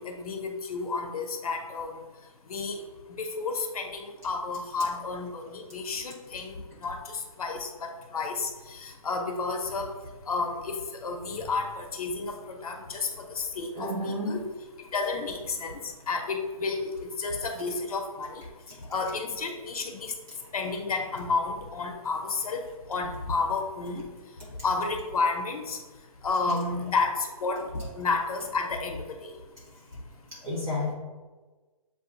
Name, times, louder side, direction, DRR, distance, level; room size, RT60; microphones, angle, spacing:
voice 1, 0.0-2.0 2.5-2.8 3.2-9.9 10.3-14.4 14.9-15.8 16.1-18.4 18.9-20.1 20.5-22.6 22.9-24.0 24.6-25.8 26.2-27.6 27.9-29.3, left 4 dB, 70° left, 3 dB, 0.8 m, -31 dB
voice 2, 13.7-14.3 26.4-26.8 30.4-30.9, left 1 dB, 15° right, -9 dB, 1.3 m, -31 dB
7.6 x 2.6 x 2.6 m, 1.3 s
hypercardioid pair, 165°, 19 cm